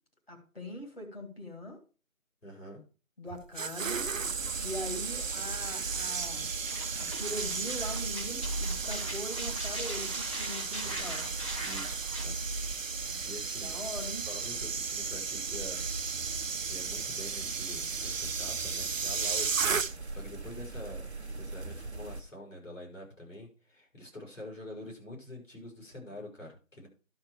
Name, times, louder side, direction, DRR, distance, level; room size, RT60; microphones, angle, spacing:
voice 1, 0.3-1.8 3.2-4.1 4.6-6.5 6.9-11.2 13.1-13.2 13.6-14.3, left 1 dB, 45° left, 2 dB, 2.9 m, -41 dB
voice 2, 2.4-2.8 10.5-11.1 11.6-12.4 13.2-13.8 14.3-15.9 16.6-19.6 20.1-21.0 21.4-26.9, left 1 dB, 70° left, -1 dB, 5.8 m, -46 dB
sound 1, 3.3-20.2 20.5-20.8, right 5 dB, 70° right, 0.6 m, -35 dB
sound 2, 3.8-22.2, right 2 dB, 50° right, 1.0 m, -41 dB
sound 3, 6.6-12.3, right 1 dB, 25° left, 1.7 m, -41 dB
11.5 x 6.1 x 4.8 m, 0.33 s
figure-of-eight pair, 170°, 41 cm